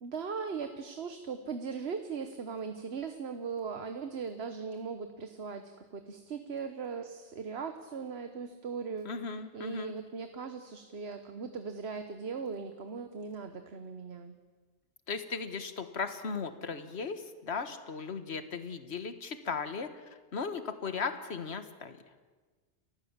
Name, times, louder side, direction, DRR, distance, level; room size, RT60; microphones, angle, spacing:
voice 1, 0.0-9.1 9.5-14.3, right 5 dB, 65° right, 8 dB, 1.4 m, -39 dB
voice 2, 9.1-9.9 15.1-22.0, left 5 dB, 65° left, 10 dB, 1.7 m, -37 dB
29.5 x 15.5 x 7.4 m, 1.4 s
omnidirectional pair, 1.2 m